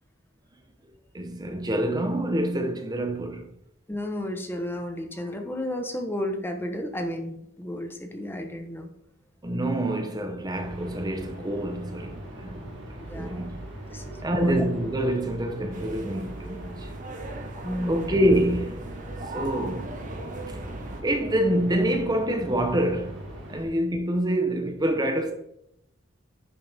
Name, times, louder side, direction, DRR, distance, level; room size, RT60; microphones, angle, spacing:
voice 1, 1.1-3.5 9.4-12.6 13.1-13.6 14.2-16.9 17.9-18.9 19.3-20.0 20.5-20.6 21.0-23.2 23.5-25.3, right 1 dB, 20° right, 0.9 m, -26 dB
voice 2, 3.9-8.9 12.9-13.5 13.9-14.6 17.6-18.1, left 1 dB, 10° left, 1.1 m, -33 dB
sound 1, 10.5-23.6, right 1 dB, 60° right, 2.6 m, -40 dB
sound 2, 15.7-21.0, right 2 dB, 40° right, 1.4 m, -38 dB
10.5 x 6.7 x 3.5 m
head